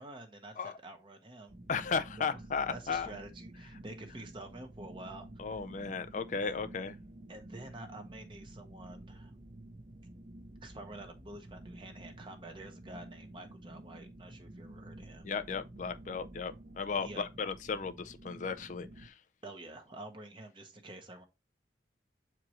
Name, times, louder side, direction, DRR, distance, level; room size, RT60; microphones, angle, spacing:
voice 1, 0.0-1.6 2.2-2.4 2.7-5.6 6.4-6.6 7.3-9.3 10.6-15.3 17.0-17.2 19.4-21.2, right 2 dB, 30° right, 0.9 m, -48 dB
sound 1, 1.5-19.1, right 1 dB, 50° right, 1.0 m, -51 dB
voice 2, 1.7-3.1 5.4-6.9 15.2-19.1, left 5 dB, 45° left, 0.4 m, -35 dB
7.5 x 4.6 x 3.1 m
head